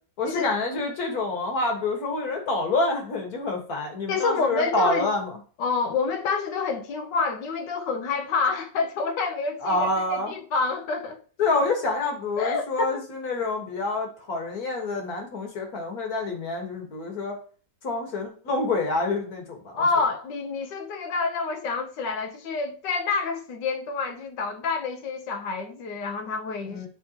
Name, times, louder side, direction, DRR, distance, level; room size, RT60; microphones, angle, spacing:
voice 1, 0.2-5.4 9.6-10.3 11.4-17.4 17.8-19.8 26.7-26.9, left 3 dB, 60° left, 1.9 m, -27 dB
voice 2, 4.1-5.2 5.6-11.2 12.4-12.9 19.7-26.9, left 4 dB, 85° left, 1.5 m, -28 dB
9.9 x 3.7 x 2.9 m
omnidirectional pair, 1.8 m